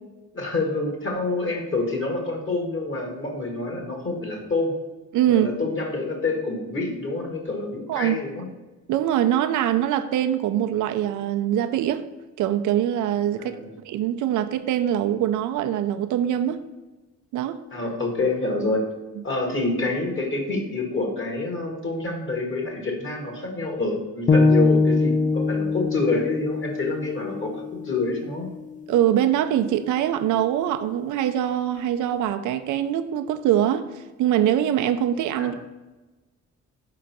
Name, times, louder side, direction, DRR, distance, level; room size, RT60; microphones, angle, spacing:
voice 1, 0.3-4.7 5.3-8.4 13.4-13.7 17.7-18.8 19.2-28.5 35.4-35.5, left 2 dB, 40° left, 1.8 m, -27 dB
voice 2, 5.1-5.5 7.9-8.2 8.9-12.1 12.4-13.6 13.8-16.6 17.3-17.6 28.9-35.7, right 11 dB, 80° right, 0.5 m, -23 dB
sound 1, 24.3-28.4, left 3 dB, 25° left, 0.5 m, -22 dB
5.0 x 3.8 x 5.8 m
cardioid pair, 90°, 30 cm